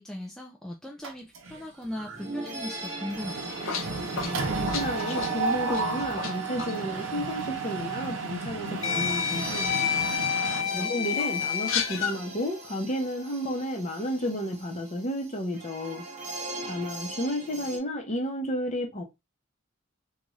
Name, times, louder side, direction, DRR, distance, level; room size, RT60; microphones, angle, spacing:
voice 1, 0.0-3.5 10.6-10.9, left 1 dB, 5° left, 0.3 m, -38 dB
Mechanisms, 1.0-1.6 2.0-2.2 2.4-10.6, right 4 dB, 75° right, 0.6 m, -33 dB
sound 1, 1.5-1.6 1.8-17.8, right 2 dB, 35° right, 0.8 m, -41 dB
sound 2, 3.3-6.3 6.6-6.8 7.9-8.0 8.8-12.2, left 8 dB, 75° left, 0.6 m, -29 dB
voice 2, 4.1-10.0 10.7-16.0 16.6-19.0, equal, 35° left, 0.8 m, -32 dB
2.6 x 2.3 x 3.1 m
head